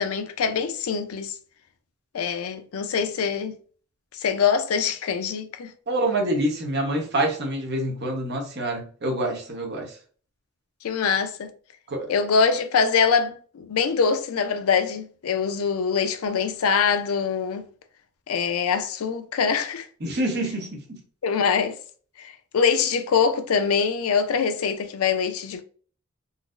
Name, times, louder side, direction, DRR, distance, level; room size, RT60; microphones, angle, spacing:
voice 1, 0.0-1.3 2.1-3.5 4.2-5.7 10.8-11.5 12.1-17.6 18.3-19.9 21.2-21.8 22.5-25.6, left 6 dB, 85° left, 0.4 m, -23 dB
voice 2, 5.9-9.9 11.9-12.1 20.0-21.0, right 1 dB, 50° right, 0.9 m, -26 dB
3.9 x 2.0 x 2.4 m
head